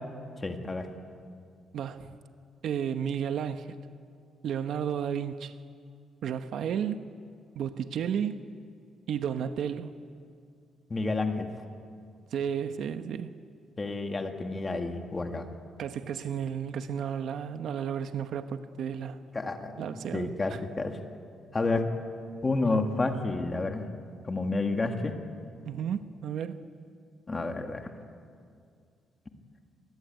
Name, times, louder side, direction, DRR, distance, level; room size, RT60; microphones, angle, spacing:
voice 1, 0.4-0.9 10.9-11.5 13.8-15.5 19.3-21.0 21.5-21.9 22.4-23.9 24.2-25.1 27.3-27.9, left 3 dB, 20° left, 1.9 m, -30 dB
voice 2, 1.7-2.1 2.6-3.8 4.4-5.5 6.2-7.1 7.5-8.4 9.1-10.0 12.3-13.3 15.8-19.2 19.8-20.6 22.6-22.8 25.6-26.6, right 8 dB, 60° right, 1.0 m, -33 dB
28.0 x 21.0 x 9.4 m
cardioid pair, 175°, 0 cm